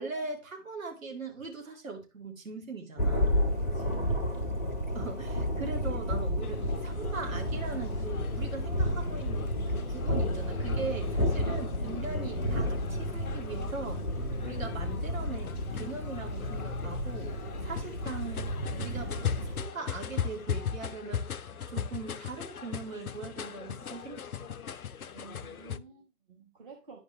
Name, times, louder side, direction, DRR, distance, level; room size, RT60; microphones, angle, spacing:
voice 1, 0.0-3.4 4.9-14.0 14.4-17.3 17.6-21.3 21.7-24.5, right 4 dB, 55° right, 2.3 m, -40 dB
Thunder, 3.0-19.6, equal, ahead, 0.8 m, -32 dB
voice 2, 3.4-4.2 17.6-17.7 21.7-21.8 25.1-27.0, right 5 dB, 35° right, 1.4 m, -51 dB
sound 1, 6.4-25.8, left 8 dB, 65° left, 0.6 m, -39 dB
10.5 x 5.1 x 3.1 m
figure-of-eight pair, 145°, 47 cm